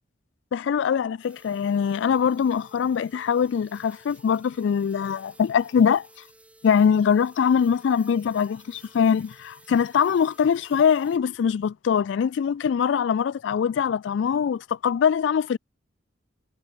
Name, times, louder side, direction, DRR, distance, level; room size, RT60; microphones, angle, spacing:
voice 1, 0.5-6.1 6.6-15.6, left 7 dB, 65° left, 0.3 m, -22 dB
sound 1, 1.2-11.2, right 2 dB, 5° right, 5.4 m, -54 dB
head